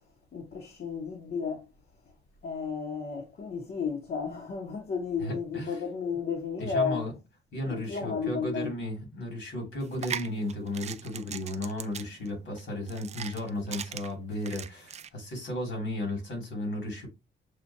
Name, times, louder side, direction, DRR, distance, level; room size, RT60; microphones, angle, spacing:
voice 1, 0.3-1.6 2.4-7.0 7.7-8.7, left 5 dB, 55° left, 1.2 m, -33 dB
voice 2, 5.2-5.8 6.6-7.2 7.5-17.1, left 1 dB, 70° left, 2.6 m, -34 dB
sound 1, 9.8-15.1, right 8 dB, 35° right, 0.4 m, -40 dB
6.8 x 2.5 x 2.7 m
cardioid pair, 90°, 20 cm